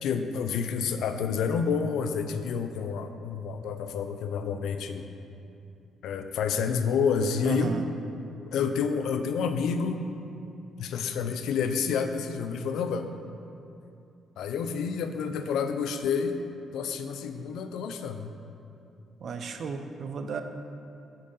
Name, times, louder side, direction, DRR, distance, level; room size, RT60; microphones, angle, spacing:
voice 1, 0.0-5.0 6.0-7.7 8.5-10.0 10.8-13.0 14.4-16.4 16.7-18.3, left 6 dB, 80° left, 7 dB, 0.3 m, -29 dB
voice 2, 7.4-7.8 19.2-20.4, right 5 dB, 55° right, 7 dB, 0.4 m, -33 dB
6.3 x 3.8 x 4.0 m, 2.7 s
cardioid pair, 90°, 0 cm